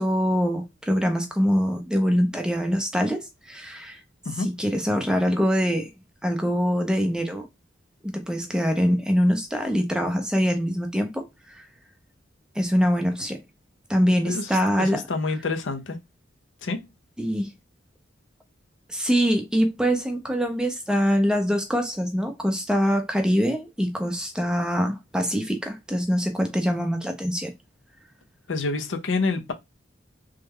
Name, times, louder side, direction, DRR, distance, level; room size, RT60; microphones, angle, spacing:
voice 1, 0.0-4.0 4.4-5.9 6.2-7.5 8.0-11.6 12.6-13.4 13.9-15.0 17.2-17.5 18.9-27.5, equal, 5° right, 0.5 m, -24 dB
voice 2, 14.8-16.0 16.6-16.9 28.5-29.5, left 3 dB, 75° left, 0.6 m, -27 dB
3.1 x 2.2 x 3.5 m
head